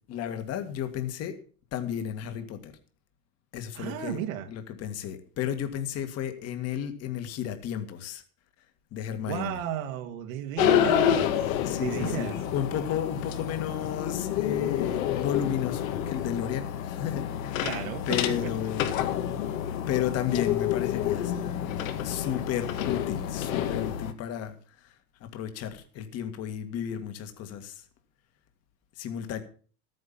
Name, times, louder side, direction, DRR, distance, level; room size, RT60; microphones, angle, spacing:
voice 1, 0.1-1.4 1.7-2.7 3.5-4.2 4.5-8.2 8.9-9.6 11.6-17.7 18.1-19.2 19.9-21.3 22.0-24.6 24.8-24.9 25.2-27.8 29.0-29.4, left 9 dB, 35° left, 1.9 m, -33 dB
voice 2, 3.7-4.5 9.3-12.5 17.6-18.7, right 11 dB, 65° right, 1.7 m, -34 dB
sound 1, 10.6-24.1, left 10 dB, 65° left, 1.9 m, -29 dB
13.0 x 9.6 x 5.7 m
supercardioid pair, 145°, 44 cm